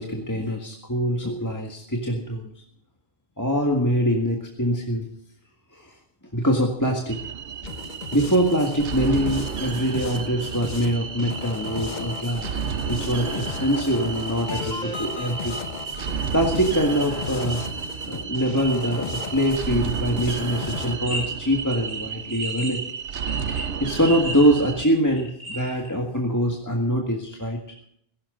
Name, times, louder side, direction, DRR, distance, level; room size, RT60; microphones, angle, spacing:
voice 1, 0.0-2.5 3.4-5.1 5.7-6.0 6.3-7.3 8.1-12.6 12.9-15.7 16.3-17.6 18.1-22.8 23.5-27.6, equal, 15° left, 1 dB, 1.8 m, -24 dB
sound 1, 7.1-24.9, right 6 dB, 80° right, 1.1 m, -32 dB
sound 2, 7.6-21.0, left 4 dB, 45° left, 1.2 m, -35 dB
sound 3, 21.0-21.3 21.5-25.9, equal, 30° right, 7.5 m, -35 dB
16.5 x 16.5 x 3.9 m, 0.70 s
omnidirectional pair, 1.1 m